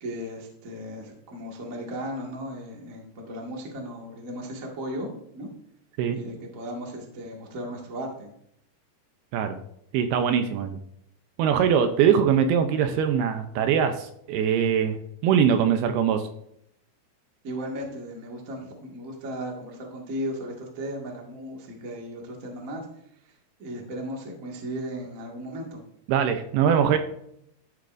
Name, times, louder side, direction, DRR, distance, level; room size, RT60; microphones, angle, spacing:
voice 1, 0.0-5.1 5.3-5.5 6.1-8.3 17.4-22.9 23.2-25.8, equal, 55° right, -1 dB, 0.8 m, -36 dB
voice 2, 9.9-10.8 11.4-15.0 15.2-16.2 26.1-27.0, right 8 dB, 80° right, 7 dB, 2.4 m, -22 dB
13.5 x 8.2 x 2.6 m, 0.73 s
omnidirectional pair, 5.0 m